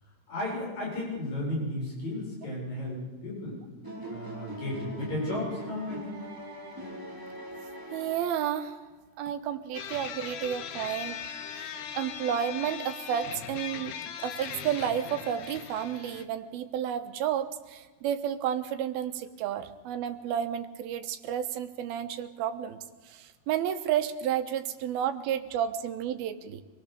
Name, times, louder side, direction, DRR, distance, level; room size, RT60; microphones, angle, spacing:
voice 1, 0.3-3.6 4.1-6.2, left 1 dB, 50° left, -4 dB, 8.6 m, -34 dB
sound 1, 3.8-8.7, equal, 5° right, 3.9 m, -41 dB
voice 2, 7.9-8.7 9.2-11.2 11.6-13.9 14.2-22.8 23.1-26.6, right 9 dB, 90° right, 9 dB, 3.0 m, -31 dB
sound 2, 9.7-16.2, left 8 dB, 80° left, 3.1 m, -39 dB
26.0 x 19.5 x 6.9 m, 1.3 s
omnidirectional pair, 4.3 m